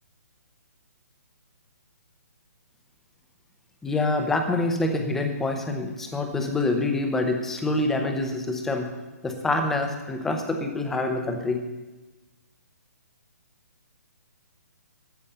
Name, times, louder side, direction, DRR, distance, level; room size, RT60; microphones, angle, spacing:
voice 1, 3.8-8.9 9.2-11.6, left 2 dB, 5° left, 5 dB, 0.7 m, -26 dB
14.0 x 7.2 x 6.6 m, 1.1 s
hypercardioid pair, 175°, 9 cm